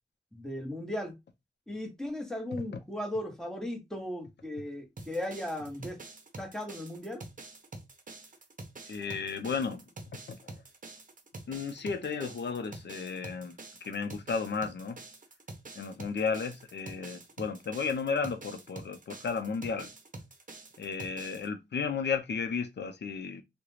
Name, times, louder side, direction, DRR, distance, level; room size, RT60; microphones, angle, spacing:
voice 1, 0.3-1.1 1.7-6.0 6.4-7.2, left 1 dB, 5° left, 1.0 m, -37 dB
sound 1, 5.0-21.5, right 2 dB, 45° right, 0.6 m, -47 dB
voice 2, 8.9-9.8 10.3-10.6 11.5-13.6 13.8-15.0 15.8-19.9 20.8-23.4, left 5 dB, 70° left, 0.6 m, -33 dB
2.4 x 2.1 x 3.1 m
wide cardioid pair, 65°, 19 cm